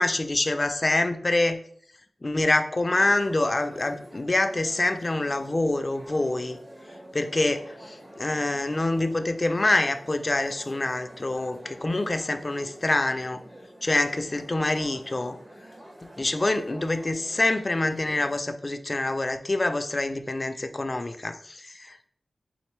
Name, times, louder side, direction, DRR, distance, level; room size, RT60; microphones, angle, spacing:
voice 1, 0.0-1.6 2.2-6.6 7.1-13.4 13.8-15.4 16.2-22.1, left 2 dB, 35° left, 8 dB, 0.4 m, -26 dB
sound 1, 3.0-18.4, right 1 dB, 35° right, 1.0 m, -47 dB
4.3 x 3.5 x 3.1 m, 0.62 s
wide cardioid pair, 90°, 0 cm